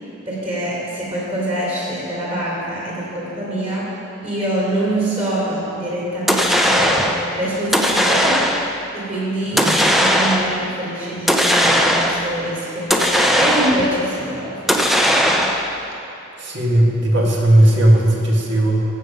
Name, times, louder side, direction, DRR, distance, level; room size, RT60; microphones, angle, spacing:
voice 1, 0.2-3.9 4.2-8.4 8.9-15.5, right 1 dB, 30° right, -6 dB, 3.0 m, -25 dB
sound 1, 6.3-7.2 7.7-8.8 9.6-10.6 11.3-12.3 12.9-14.0 14.7-15.8, equal, ahead, 0.5 m, -17 dB
voice 2, 16.4-18.8, right 1 dB, 60° right, -2 dB, 1.8 m, -16 dB
15.0 x 6.8 x 5.2 m, 2.9 s
head